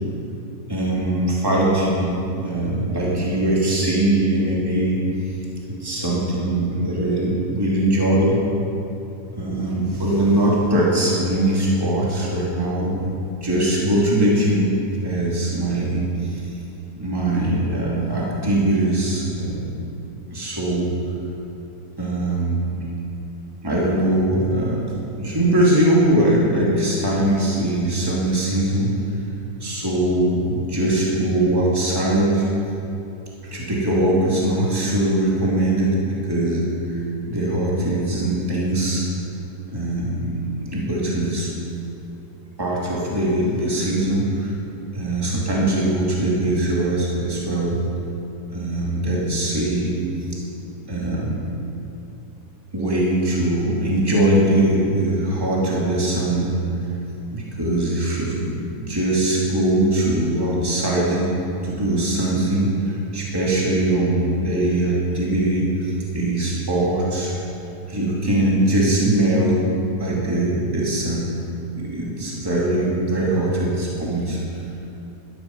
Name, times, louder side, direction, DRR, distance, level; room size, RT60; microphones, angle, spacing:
voice 1, 0.7-5.4 5.7-8.5 9.3-13.1 13.4-16.5 16.9-19.7 20.3-20.9 22.0-22.7 23.6-24.8 25.2-29.0 29.6-32.4 33.4-36.0 36.3-36.8 37.2-39.0 39.7-41.5 42.6-44.5 44.9-47.8 48.5-50.0 50.6-51.4 52.7-56.5 57.3-61.3 61.6-67.4 67.9-69.6 70.0-71.4 71.7-74.4, right 1 dB, 15° right, -5 dB, 2.7 m, -21 dB
14.0 x 13.0 x 6.0 m, 2.7 s
omnidirectional pair, 1.8 m